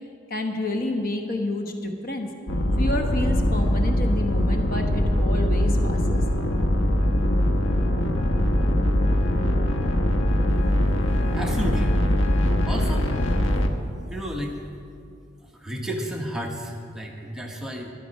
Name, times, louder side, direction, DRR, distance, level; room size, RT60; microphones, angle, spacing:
voice 1, 0.3-2.3 2.8-6.2, left 1 dB, 45° left, 4 dB, 1.2 m, -29 dB
sound 1, 2.5-13.7, left 1 dB, 75° left, 1.0 m, -22 dB
voice 2, 11.3-12.0 12.7-13.1 14.1-14.6 15.4-17.9, equal, 5° right, -1 dB, 1.1 m, -32 dB
13.0 x 11.0 x 5.3 m, 2.5 s
head